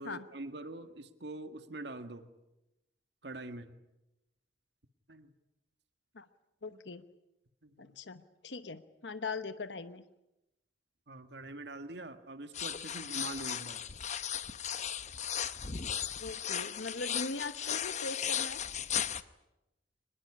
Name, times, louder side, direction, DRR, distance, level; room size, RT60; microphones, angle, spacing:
voice 1, 0.0-2.3 3.2-3.7 5.1-5.3 6.7-6.8 7.6-8.0 11.1-13.8, right 2 dB, 70° right, 8 dB, 1.8 m, -44 dB
voice 2, 6.6-7.0 7.8-10.0 16.2-18.6, left 3 dB, 80° left, 11 dB, 1.0 m, -40 dB
sound 1, 12.5-19.2, left 9 dB, 40° left, 0.9 m, -36 dB
24.0 x 21.0 x 9.9 m, 0.92 s
head